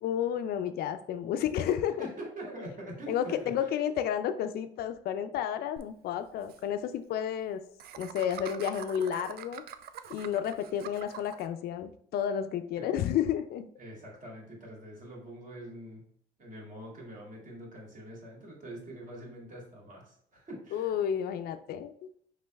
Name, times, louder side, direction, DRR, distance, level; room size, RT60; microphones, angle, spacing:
voice 1, 0.0-2.1 3.1-7.6 8.0-9.6 10.1-13.7 20.7-22.1, left 9 dB, 65° left, 10 dB, 0.4 m, -31 dB
voice 2, 2.0-3.5 12.8-12.9 13.8-16.0 16.4-20.9, right 1 dB, 50° right, -2 dB, 2.0 m, -44 dB
Laughter, 5.8-5.9 6.1-6.2 6.4-6.6 7.8-11.5, right 9 dB, 65° right, 0.4 m, -44 dB
5.0 x 3.4 x 3.1 m, 0.63 s
cardioid pair, 110°, 17 cm